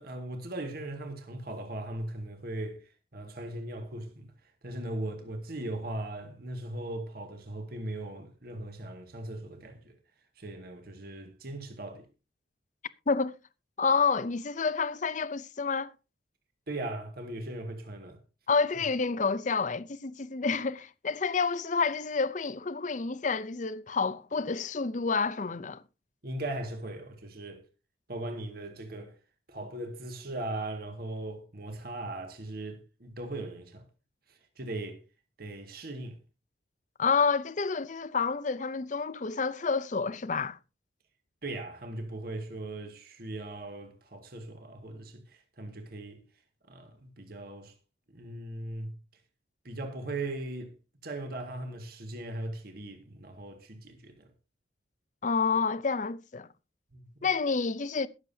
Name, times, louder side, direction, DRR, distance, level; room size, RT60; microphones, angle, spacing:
voice 1, 0.0-4.3 4.6-10.0 10.4-12.1 16.7-18.2 26.2-27.7 28.1-29.2 29.5-33.8 34.3-35.0 35.4-36.2 41.4-46.2 46.7-47.7 48.1-48.9 49.6-50.7 51.0-54.3 56.9-57.3, right 1 dB, 50° right, 1.9 m, -39 dB
voice 2, 13.8-15.9 18.5-25.8 37.0-40.6 55.2-56.5 57.2-58.1, left 5 dB, 40° left, 0.6 m, -29 dB
22.0 x 7.4 x 2.7 m
head